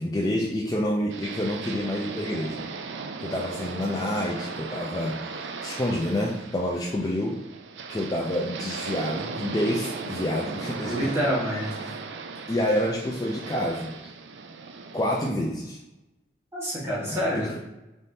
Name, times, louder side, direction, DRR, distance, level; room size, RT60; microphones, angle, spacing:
voice 1, 0.0-2.7 3.2-7.4 7.9-11.2 12.5-14.1 14.9-15.8 17.1-17.5, left 1 dB, 20° left, -2 dB, 0.4 m, -28 dB
sound 1, 1.1-15.3, right 4 dB, 85° right, 0.4 m, -37 dB
voice 2, 10.9-11.7 16.5-17.7, equal, 15° right, -7 dB, 1.3 m, -27 dB
4.1 x 3.5 x 2.6 m, 0.98 s
head